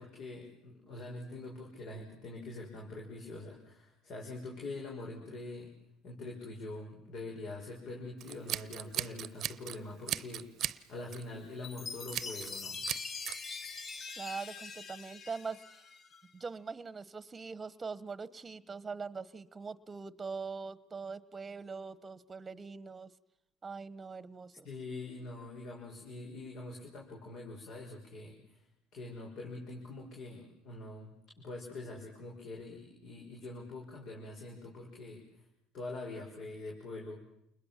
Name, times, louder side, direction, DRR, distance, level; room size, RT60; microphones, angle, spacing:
voice 1, 0.0-5.7 6.0-10.5 10.9-12.8 24.6-28.6 28.9-31.1 31.4-35.2 35.7-37.3, left 2 dB, 60° left, -1 dB, 6.0 m, -44 dB
Scissors, 8.2-9.8 10.1-10.8 11.1-11.3 12.1-12.6 12.9-13.4, right 11 dB, 55° right, 0.9 m, -37 dB
Chime, 11.6-16.2, left 4 dB, 40° left, 1.6 m, -43 dB
voice 2, 14.2-15.8 16.3-23.1 23.6-24.7, right 4 dB, 25° right, 18 dB, 1.2 m, -42 dB
28.5 x 21.0 x 7.4 m, 0.80 s
supercardioid pair, 95°, 0 cm